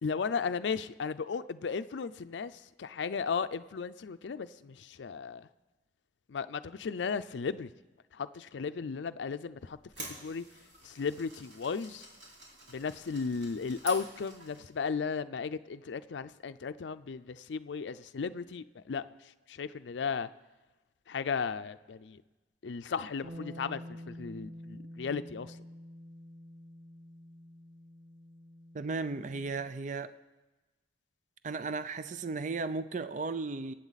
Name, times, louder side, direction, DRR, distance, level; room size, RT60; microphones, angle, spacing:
voice 1, 0.0-5.5 6.3-7.7 8.1-9.8 10.2-10.4 10.8-12.1 12.7-20.3 21.1-22.2 22.6-23.8 24.1-25.6, left 5 dB, 80° left, 0.5 m, -35 dB
sound 1, 9.6-14.7, right 2 dB, 80° right, 4.0 m, -48 dB
Bass guitar, 23.2-29.5, equal, 25° right, 1.8 m, -48 dB
voice 2, 28.7-30.1 31.4-33.7, right 4 dB, 45° right, 0.5 m, -35 dB
25.0 x 8.8 x 4.1 m
head